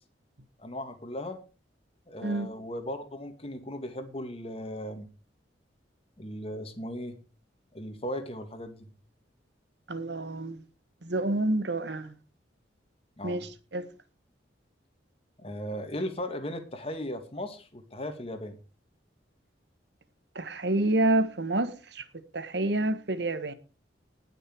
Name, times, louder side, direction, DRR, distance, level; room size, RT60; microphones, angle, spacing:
voice 1, 0.6-1.4 2.1-5.1 6.2-7.2 7.7-8.9 13.2-13.5 15.4-18.6, left 1 dB, 35° left, 2.2 m, -37 dB
voice 2, 9.9-10.6 11.0-12.1 13.2-13.9 20.3-23.5, right 2 dB, 70° right, 1.4 m, -28 dB
19.5 x 6.7 x 4.7 m
head